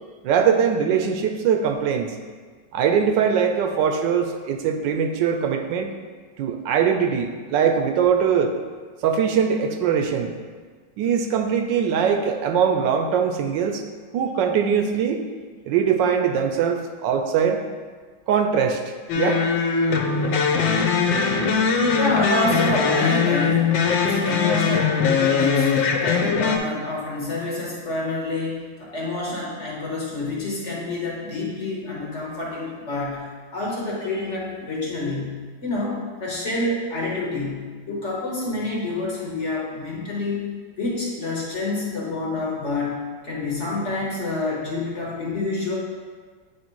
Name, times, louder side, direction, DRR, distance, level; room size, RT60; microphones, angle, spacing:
voice 1, 0.2-2.2 2.7-5.9 6.4-8.5 9.0-10.4 11.0-13.8 14.1-15.2 15.7-17.6 18.3-18.8 19.2-19.4, right 7 dB, 75° right, 5 dB, 1.1 m, -21 dB
sound 1, 19.1-26.6, left 5 dB, 75° left, 1.3 m, -21 dB
voice 2, 21.9-33.3 33.5-40.4 40.8-43.0 43.2-45.8, left 2 dB, 45° left, -4 dB, 1.1 m, -28 dB
8.6 x 3.2 x 4.5 m, 1.5 s
omnidirectional pair, 2.2 m